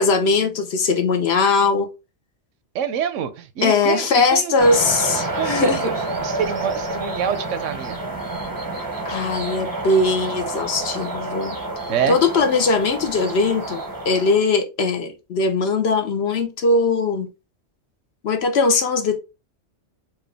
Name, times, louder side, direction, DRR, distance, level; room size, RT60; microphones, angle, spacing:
voice 1, 0.0-1.9 3.6-5.9 9.0-11.6 12.1-17.3 18.2-19.2, left 3 dB, 60° left, 1.0 m, -20 dB
voice 2, 2.7-4.5 5.3-8.0 11.9-12.2, right 8 dB, 85° right, 1.0 m, -26 dB
sound 1, 4.6-14.4, right 2 dB, 20° right, 0.6 m, -29 dB
4.5 x 2.4 x 3.3 m
omnidirectional pair, 1.2 m